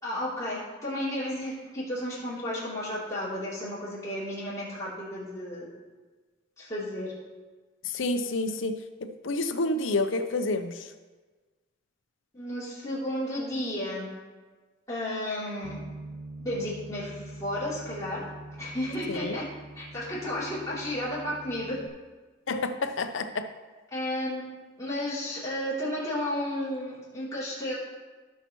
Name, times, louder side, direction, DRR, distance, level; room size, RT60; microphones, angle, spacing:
voice 1, 0.0-5.7 6.6-7.1 12.3-14.1 14.9-15.8 16.4-18.3 18.6-19.5 19.7-21.8 23.9-24.5 24.8-27.8, left 1 dB, 15° left, -9 dB, 3.2 m, -33 dB
voice 2, 7.9-10.7 19.1-19.4 22.5-23.5, left 2 dB, 80° left, 8 dB, 0.7 m, -29 dB
Bass guitar, 15.6-21.9, right 2 dB, 10° right, 0.7 m, -44 dB
16.5 x 5.6 x 3.1 m, 1.3 s
head